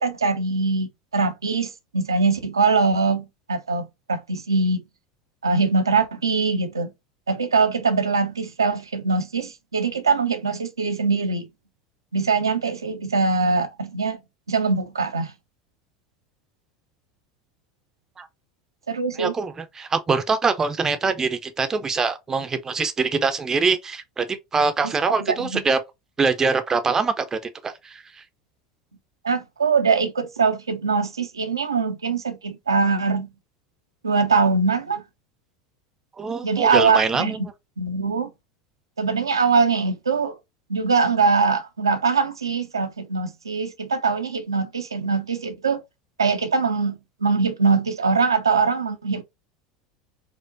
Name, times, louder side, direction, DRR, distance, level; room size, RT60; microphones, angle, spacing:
voice 1, 0.0-4.8 5.4-6.9 7.3-11.5 12.1-14.2 14.5-15.3 18.9-19.3 24.8-24.9 25.3-25.6 29.2-33.3 34.0-35.0 36.4-37.4 37.8-38.3 39.0-40.4 40.7-45.8 46.2-49.2, right 4 dB, 85° right, 0.5 m, -22 dB
voice 2, 19.2-25.8 26.2-28.0 36.2-37.5, right 4 dB, 20° right, 0.5 m, -24 dB
4.7 x 2.1 x 2.5 m
figure-of-eight pair, 75°, 2 cm